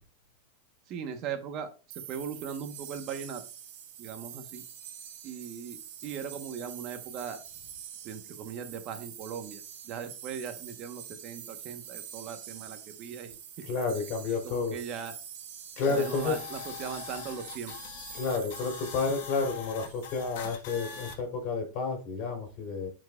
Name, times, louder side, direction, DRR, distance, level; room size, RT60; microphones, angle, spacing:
voice 1, 0.9-3.4 4.0-4.6 5.2-7.4 8.0-13.4 14.4-15.1 15.9-17.7, right 7 dB, 45° right, 7 dB, 1.1 m, -39 dB
sound 1, 1.9-20.6, right 9 dB, 70° right, 1.6 m, -46 dB
voice 2, 13.7-14.8 15.8-16.4 18.1-22.9, left 4 dB, 50° left, 3 dB, 3.2 m, -30 dB
sound 2, 15.8-21.2, left 8 dB, 65° left, 1.5 m, -42 dB
10.5 x 4.6 x 2.4 m, 0.33 s
supercardioid pair, 125°, 0 cm